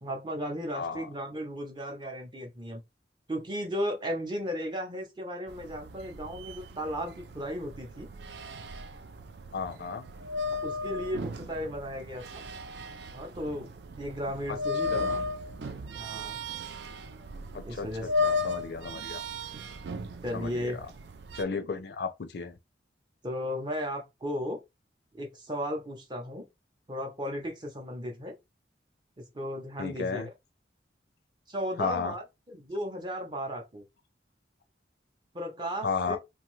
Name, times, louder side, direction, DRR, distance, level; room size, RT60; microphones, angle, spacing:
voice 1, 0.0-2.8 3.3-8.1 10.6-12.4 13.1-13.7 14.0-15.0 16.0-16.4 17.6-18.1 18.9-19.3 20.2-20.8 23.2-24.6 25.1-26.5 26.9-28.3 29.2-30.3 31.5-33.8 35.3-36.2, equal, 25° right, 0.7 m, -35 dB
voice 2, 0.7-1.1 9.5-10.0 14.5-14.6 14.9-15.2 17.5-19.2 20.3-20.9 21.3-22.6 29.8-30.3 31.8-32.1 35.8-36.2, left 5 dB, 60° left, 0.4 m, -34 dB
sound 1, 5.5-21.4, left 2 dB, 65° right, 0.4 m, -36 dB
2.6 x 2.3 x 3.1 m
head